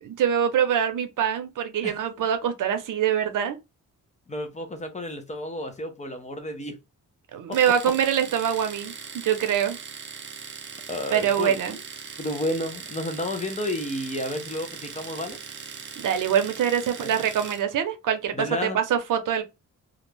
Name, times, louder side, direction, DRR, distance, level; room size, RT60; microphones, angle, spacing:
voice 1, 0.2-3.6 7.3-9.8 11.1-11.8 16.0-18.3 18.6-19.4, right 9 dB, 90° right, 0.6 m, -24 dB
voice 2, 4.3-6.8 7.5-7.6 10.9-11.8 12.2-15.4 17.0-17.1 18.3-18.8, left 1 dB, 25° left, 0.5 m, -31 dB
Domestic sounds home sounds, 7.5-17.7, right 6 dB, 40° right, 0.5 m, -40 dB
2.4 x 2.1 x 3.1 m
wide cardioid pair, 165°, 31 cm